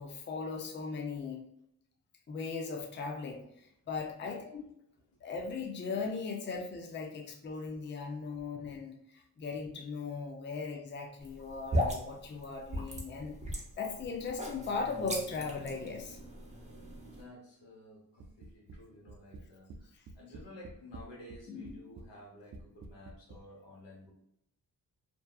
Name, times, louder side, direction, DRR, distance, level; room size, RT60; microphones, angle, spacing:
voice 1, 0.0-1.4 2.3-4.7 5.2-16.2 19.9-20.0 21.5-21.8, left 4 dB, 25° left, 2 dB, 0.5 m, -38 dB
sound 1, 11.2-17.2, equal, 15° right, 0.8 m, -37 dB
voice 2, 17.0-24.1, left 1 dB, 85° left, -4 dB, 1.0 m, -53 dB
sound 2, 18.2-18.8 19.1-19.8 20.1-21.4 21.6-22.1 22.5-23.4, right 3 dB, 45° right, 0.4 m, -48 dB
2.6 x 2.3 x 2.3 m, 0.74 s
supercardioid pair, 45°, 43 cm